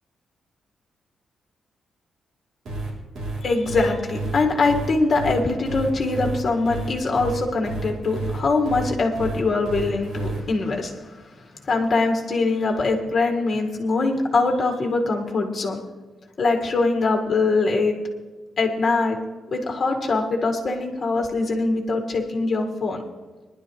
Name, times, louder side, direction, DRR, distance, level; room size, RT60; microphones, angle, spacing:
sound 1, 2.7-10.4, right 2 dB, 65° right, 3.4 m, -30 dB
voice 1, 3.4-11.2 11.6-15.8 16.4-17.9 18.6-19.2 19.5-23.0, left 3 dB, 35° left, 1 dB, 1.9 m, -23 dB
20.0 x 11.5 x 3.2 m, 1.3 s
cardioid pair, 135°, 0 cm